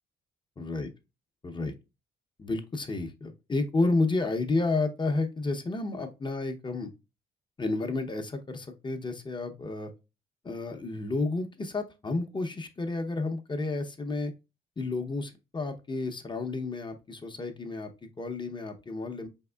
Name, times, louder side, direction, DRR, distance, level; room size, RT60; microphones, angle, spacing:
voice 1, 0.6-0.9 1.4-1.7 2.4-6.9 7.6-9.9 10.4-14.3 14.8-19.3, left 3 dB, 25° left, 0.6 m, -31 dB
4.6 x 3.5 x 2.2 m
cardioid pair, 90°, 20 cm